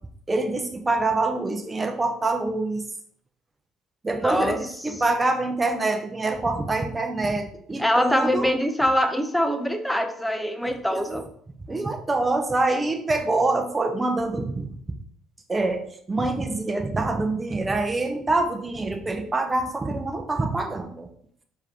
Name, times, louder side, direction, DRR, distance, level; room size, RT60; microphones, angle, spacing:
voice 1, 0.3-2.8 4.0-8.5 10.6-11.2 11.7-14.7 15.5-21.1, right 2 dB, 25° right, 4 dB, 0.8 m, -25 dB
voice 2, 4.2-4.6 7.8-11.2, equal, 5° left, 6 dB, 0.7 m, -23 dB
4.7 x 2.9 x 3.5 m, 0.63 s
hypercardioid pair, 55°, 0 cm